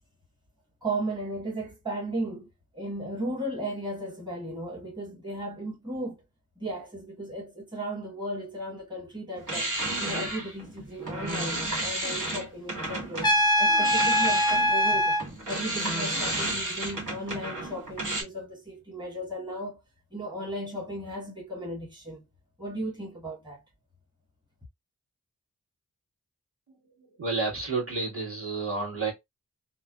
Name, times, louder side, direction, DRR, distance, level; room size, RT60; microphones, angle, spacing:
voice 1, 0.8-2.5 2.7-6.2 6.6-9.7 10.0-13.3 13.6-15.1 15.5-19.8 20.1-22.2 22.6-23.6, right 1 dB, 15° right, 1.3 m, -35 dB
sound 1, 9.4-13.3 13.7-18.2, right 1 dB, 70° right, 1.3 m, -32 dB
Trumpet, 13.2-15.2, equal, 15° left, 0.5 m, -22 dB
voice 2, 27.0-29.1, right 3 dB, 45° right, 1.6 m, -30 dB
3.1 x 2.0 x 2.3 m
cardioid pair, 50°, 32 cm